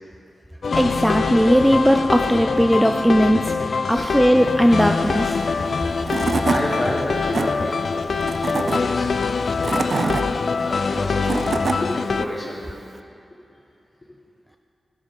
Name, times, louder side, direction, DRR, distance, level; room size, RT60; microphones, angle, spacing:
sound 1, 0.6-12.3, left 4 dB, 70° left, 0.3 m, -24 dB
voice 1, 0.8-5.4, equal, ahead, 4 dB, 0.5 m, -18 dB
voice 2, 3.9-4.2 6.3-9.1 9.4-10.2 10.5-12.6, left 1 dB, 40° left, -5 dB, 2.9 m, -30 dB
Tools / Wood, 5.7-5.8 6.1-6.6 7.1-7.5 8.2-8.8 9.4-10.2 11.0-11.8, right 4 dB, 60° right, 0.5 m, -24 dB
13.0 x 6.4 x 5.3 m, 2.7 s
cardioid pair, 50°, 0 cm